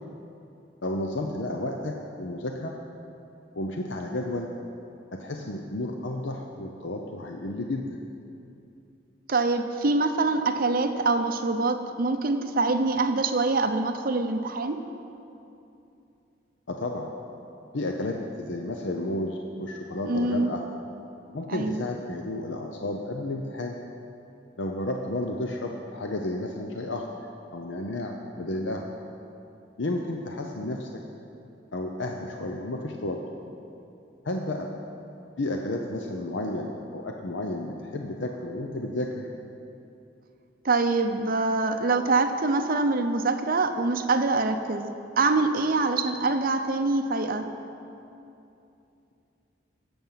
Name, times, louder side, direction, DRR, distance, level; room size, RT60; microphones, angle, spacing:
voice 1, 0.8-2.7 3.5-4.5 5.2-7.9 16.7-17.1 17.7-20.6 21.3-23.7 24.6-27.1 27.5-28.8 29.8-30.9 31.7-33.2 34.2-34.7 35.4-39.3, left 1 dB, 75° left, 2 dB, 0.8 m, -32 dB
voice 2, 9.3-14.8 20.0-20.5 21.5-21.8 40.6-44.9 45.2-47.5, right 3 dB, 50° right, 7 dB, 0.7 m, -24 dB
16.5 x 7.2 x 5.8 m, 2.8 s
head